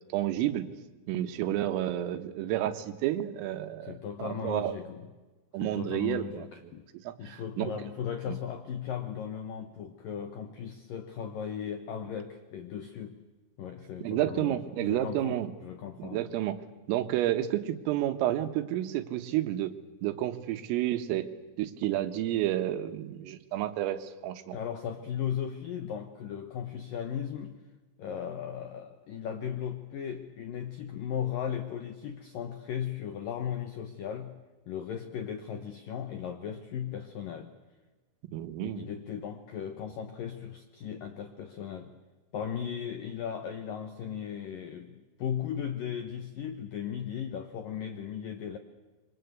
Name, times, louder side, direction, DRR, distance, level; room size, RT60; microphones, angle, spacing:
voice 1, 0.1-0.7 1.1-4.7 5.5-6.5 7.0-7.7 8.3-8.4 14.0-15.5 16.0-16.6 16.9-19.8 20.0-21.3 21.6-24.6 38.3-38.9, right 13 dB, 85° right, 9 dB, 3.9 m, -30 dB
voice 2, 3.8-5.1 5.6-6.9 7.2-13.2 13.6-16.3 24.5-27.6 28.0-37.5 38.6-42.0 42.3-48.6, left 8 dB, 80° left, 8 dB, 2.0 m, -37 dB
26.0 x 24.0 x 8.2 m, 1.3 s
omnidirectional pair, 5.8 m